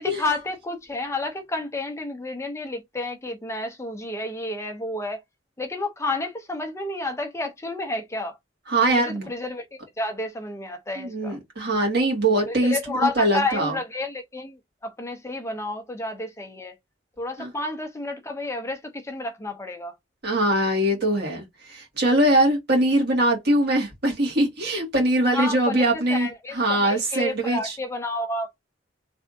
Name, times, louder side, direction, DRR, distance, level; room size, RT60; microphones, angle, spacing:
voice 1, 0.0-5.2 5.6-8.4 8.9-9.7 10.0-11.4 12.5-16.8 17.2-19.9 25.3-25.9 26.1-28.6, left 2 dB, 15° left, 0.6 m, -30 dB
voice 2, 8.7-9.3 11.0-13.7 17.4-17.5 20.2-26.3 26.5-27.7, right 1 dB, 60° right, 2.1 m, -22 dB
3.4 x 3.3 x 2.7 m
head